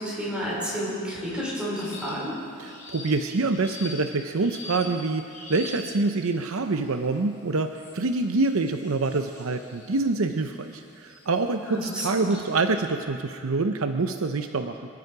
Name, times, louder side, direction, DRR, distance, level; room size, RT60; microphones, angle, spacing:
voice 1, 0.0-2.4 11.6-12.3, equal, 5° right, -7 dB, 4.9 m, -30 dB
sound 1, 1.8-2.3 2.6-6.2 6.8-7.2 7.8-11.3 11.8-12.6, left 3 dB, 35° left, 3.5 m, -44 dB
voice 2, 2.6-14.8, right 3 dB, 75° right, 6 dB, 0.7 m, -26 dB
23.5 x 11.0 x 4.9 m, 2.3 s
head